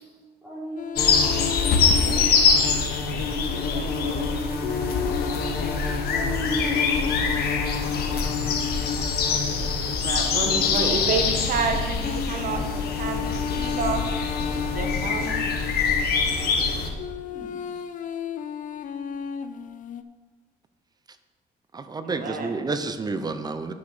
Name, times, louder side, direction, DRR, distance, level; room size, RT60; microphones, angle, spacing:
voice 1, 0.4-1.6 3.4-4.5 6.1-6.7 10.4-11.1 17.3-17.5, right 1 dB, 5° right, -10 dB, 3.2 m, -37 dB
sound 1, 0.8-3.0 4.6-10.6 12.0-16.0 17.0-20.0, left 8 dB, 50° left, 0.6 m, -34 dB
sound 2, 1.0-16.9, left 5 dB, 65° left, 1.5 m, -24 dB
voice 2, 10.0-14.0 14.7-15.4 22.0-22.5, right 4 dB, 55° right, 4 dB, 1.4 m, -29 dB
voice 3, 21.7-23.7, right 3 dB, 25° right, 10 dB, 0.8 m, -30 dB
10.5 x 7.0 x 5.0 m, 1.4 s
cardioid pair, 110°, 17 cm